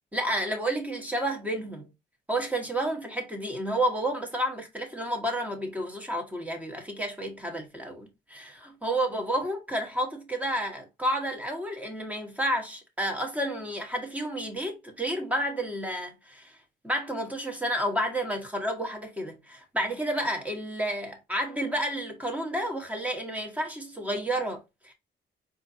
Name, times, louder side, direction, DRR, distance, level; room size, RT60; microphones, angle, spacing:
voice 1, 0.1-1.9 2.3-16.6 16.8-24.9, right 1 dB, 5° right, 1.2 m, -31 dB
4.3 x 2.7 x 2.7 m
cardioid pair, 90°, 20 cm